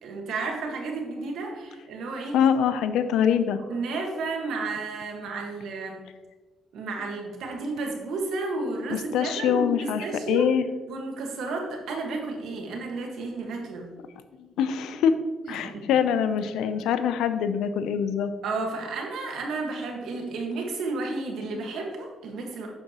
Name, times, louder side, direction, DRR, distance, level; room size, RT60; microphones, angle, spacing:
voice 1, 0.0-2.4 3.6-6.0 6.7-10.5 10.9-13.9 15.5-15.9 18.4-22.7, right 3 dB, 80° right, 1 dB, 1.6 m, -32 dB
voice 2, 2.3-3.6 8.9-10.6 14.4-15.2 15.5-18.3 21.5-21.6, left 8 dB, 85° left, 11 dB, 0.5 m, -24 dB
8.5 x 6.6 x 3.0 m, 1.2 s
cardioid pair, 90°, 0 cm